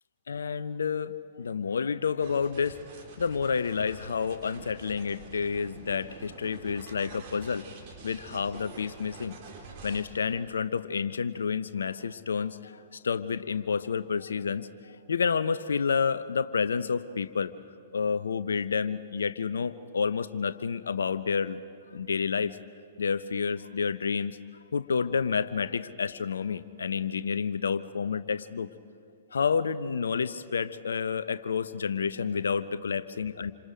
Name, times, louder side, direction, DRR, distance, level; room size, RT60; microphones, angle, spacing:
voice 1, 0.3-2.8 3.2-7.7 8.0-9.3 9.8-17.5 17.9-21.6 21.9-22.6 23.0-24.4 24.7-28.7 29.3-33.5, left 6 dB, 70° left, 14 dB, 0.8 m, -29 dB
sound 1, 2.2-10.0, right 4 dB, 45° right, 4.2 m, -47 dB
28.0 x 26.5 x 5.1 m, 2.5 s
figure-of-eight pair, 110°, 0 cm